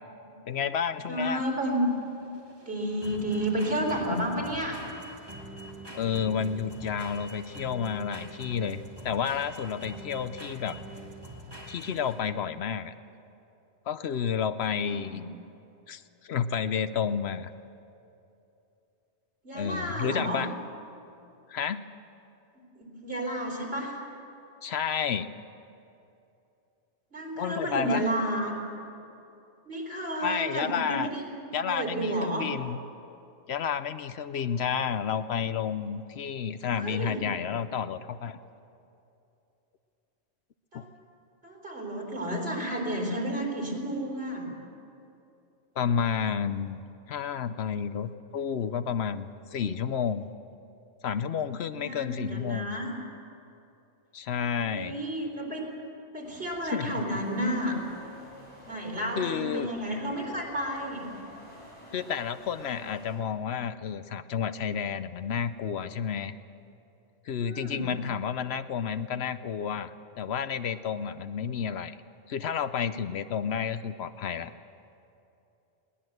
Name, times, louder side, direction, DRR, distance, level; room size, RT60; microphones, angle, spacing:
voice 1, 0.5-1.4 5.9-10.8 11.7-12.9 13.9-15.2 15.9-16.0 16.3-17.5 19.5-20.5 21.5-21.8 24.6-25.3 27.4-28.0 30.2-31.1 31.5-32.8 33.5-38.4 40.7-40.9 45.8-46.8 47.1-50.3 51.0-52.8 54.1-55.0 56.7-57.0 59.2-59.7 61.9-66.3 67.3-72.0 72.3-74.5, left 7 dB, 70° left, 12 dB, 0.9 m, -31 dB
sound 1, 0.8-12.4, right 1 dB, 20° right, 1.8 m, -44 dB
voice 2, 1.1-1.9 2.7-4.8 14.8-15.2 19.4-20.4 22.8-24.0 27.1-28.6 29.7-31.2 31.5-32.5 36.6-37.3 40.7-40.9 41.4-44.5 51.7-52.9 54.6-55.6 56.1-57.8 58.7-61.1 67.4-67.9, right 1 dB, 55° right, -1 dB, 4.3 m, -31 dB
sound 2, 56.2-63.2, equal, 25° left, 6.2 m, -50 dB
21.0 x 18.5 x 7.8 m, 2.8 s
omnidirectional pair, 1.2 m